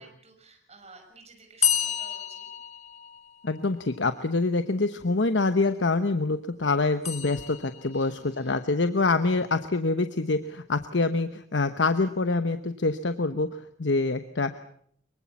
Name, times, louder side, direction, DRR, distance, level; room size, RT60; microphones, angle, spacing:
voice 1, 0.0-2.5 7.9-8.6, right 3 dB, 35° right, 2 dB, 6.4 m, -53 dB
sound 1, 1.6-3.6 7.0-8.1, left 9 dB, 40° left, 2.3 m, -30 dB
voice 2, 3.4-14.6, left 3 dB, 85° left, 10 dB, 1.0 m, -26 dB
24.0 x 23.0 x 7.2 m, 0.64 s
head